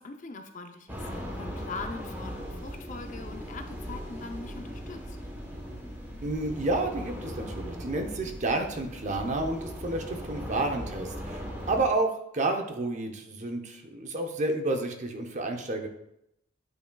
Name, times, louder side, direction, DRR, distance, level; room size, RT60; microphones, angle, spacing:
voice 1, 0.0-5.2, left 3 dB, 35° left, 6 dB, 0.5 m, -42 dB
sound 1, 0.9-11.8, equal, 10° right, 0.9 m, -39 dB
voice 2, 6.2-11.4 11.7-15.9, right 2 dB, 35° right, 5 dB, 0.7 m, -30 dB
9.0 x 5.6 x 2.3 m, 0.79 s
head